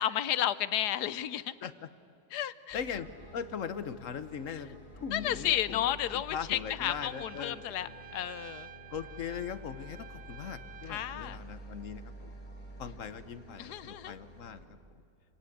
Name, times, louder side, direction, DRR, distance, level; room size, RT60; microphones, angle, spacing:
voice 1, 0.0-1.5 2.3-2.8 5.1-8.7 10.9-11.4 13.6-14.2, left 11 dB, 85° left, 16 dB, 1.3 m, -32 dB
voice 2, 2.7-7.9 8.9-12.3 12.8-14.8, left 7 dB, 60° left, 13 dB, 1.2 m, -40 dB
sound 1, 2.7-14.6, equal, 30° left, 4.2 m, -50 dB
Trumpet, 7.0-11.2, right 9 dB, 55° right, 0.7 m, -50 dB
27.5 x 18.0 x 8.4 m, 2.6 s
omnidirectional pair, 1.7 m